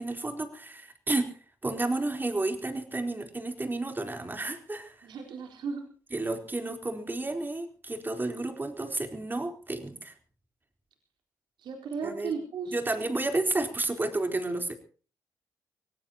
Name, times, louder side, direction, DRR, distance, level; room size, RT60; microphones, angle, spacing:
voice 1, 0.0-1.4 1.6-5.1 6.1-10.1 12.0-12.3 12.7-14.8, right 2 dB, 25° right, 5 dB, 4.0 m, -31 dB
voice 2, 5.0-5.8 11.6-12.8, right 5 dB, 70° right, 2 dB, 4.3 m, -35 dB
25.0 x 17.5 x 3.0 m, 0.39 s
supercardioid pair, 50°, 8 cm